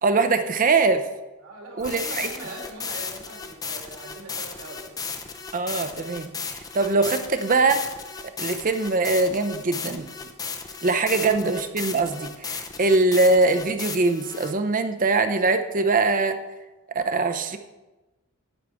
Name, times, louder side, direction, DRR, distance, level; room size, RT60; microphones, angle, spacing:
voice 1, 0.0-1.0 1.8-2.3 5.5-7.8 8.4-10.1 10.8-16.4 16.9-17.6, right 3 dB, 40° right, 9 dB, 0.6 m, -22 dB
voice 2, 1.4-4.9 11.1-11.4, right 1 dB, 85° right, -2 dB, 2.5 m, -41 dB
sound 1, 1.8-14.5, left 5 dB, 15° left, 0.6 m, -35 dB
11.5 x 8.8 x 3.5 m, 1.1 s
head